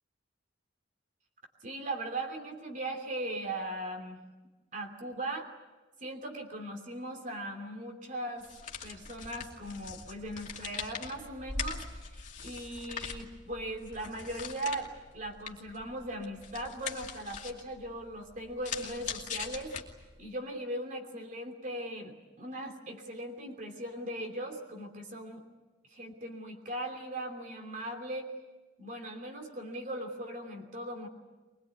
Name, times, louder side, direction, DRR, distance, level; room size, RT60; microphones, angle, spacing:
voice 1, 1.6-4.2 4.7-5.5 6.0-8.5 8.8-19.8 20.2-25.4 25.9-28.3 28.8-31.1, right 1 dB, 45° right, 4 dB, 3.0 m, -39 dB
sound 1, 8.4-20.3, left 6 dB, 40° left, 2.6 m, -42 dB
23.0 x 21.5 x 9.5 m, 1.2 s
head